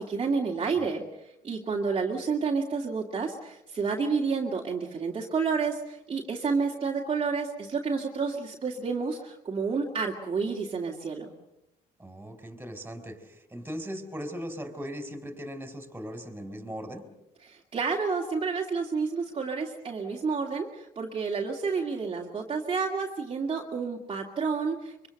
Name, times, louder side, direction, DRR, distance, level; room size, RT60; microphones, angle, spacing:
voice 1, 0.0-11.3 17.4-25.1, right 5 dB, 30° right, -2 dB, 2.4 m, -30 dB
voice 2, 12.0-17.0, equal, 10° right, 8 dB, 4.0 m, -39 dB
25.5 x 24.0 x 6.6 m, 0.88 s
cardioid pair, 110°, 17 cm